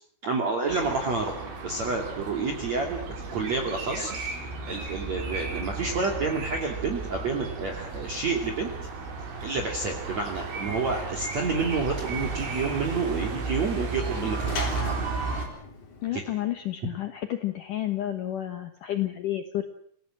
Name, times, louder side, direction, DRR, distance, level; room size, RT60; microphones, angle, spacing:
voice 1, 0.2-1.4 1.6-3.0 3.3-4.3 4.7-8.7 9.4-14.5 16.1-16.2, right 4 dB, 40° right, 1 dB, 3.4 m, -29 dB
sound 1, 0.7-15.5, right 4 dB, 75° right, 7.1 m, -34 dB
sound 2, 3.0-6.1 6.6-7.6, right 6 dB, 55° right, 4.3 m, -46 dB
Sliding door / Slam, 11.2-16.6, left 3 dB, 45° left, 4.8 m, -39 dB
voice 2, 16.0-19.6, left 13 dB, 80° left, 8 dB, 1.9 m, -30 dB
28.5 x 18.5 x 7.7 m, 0.64 s
omnidirectional pair, 5.6 m